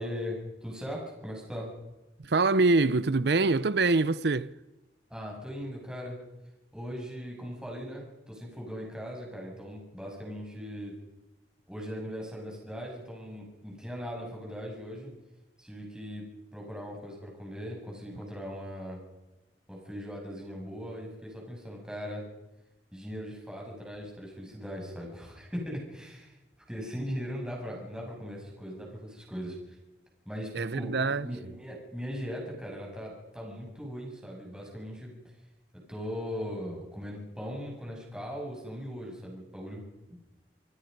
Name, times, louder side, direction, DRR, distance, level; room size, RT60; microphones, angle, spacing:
voice 1, 0.0-1.7 5.1-6.2 6.7-10.9 11.7-15.1 15.6-19.0 19.7-22.3 22.9-26.4 26.7-29.6 30.3-35.1 35.9-40.2, equal, 5° right, 7.3 m, -39 dB
voice 2, 2.2-4.5 30.5-31.3, right 3 dB, 65° right, 0.7 m, -24 dB
28.0 x 22.5 x 5.4 m
head